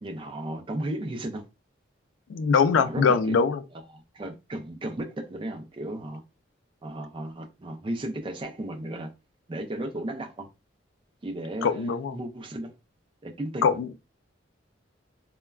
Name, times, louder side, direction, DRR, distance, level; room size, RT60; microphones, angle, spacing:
voice 1, 0.0-1.5 2.7-3.4 3.7-6.2 6.8-9.1 9.5-10.5 11.2-12.8 13.2-13.8, right 1 dB, 25° right, 0.4 m, -35 dB
voice 2, 2.3-3.6 11.6-12.2 13.6-13.9, left 5 dB, 80° left, 0.3 m, -22 dB
3.4 x 2.1 x 2.2 m
head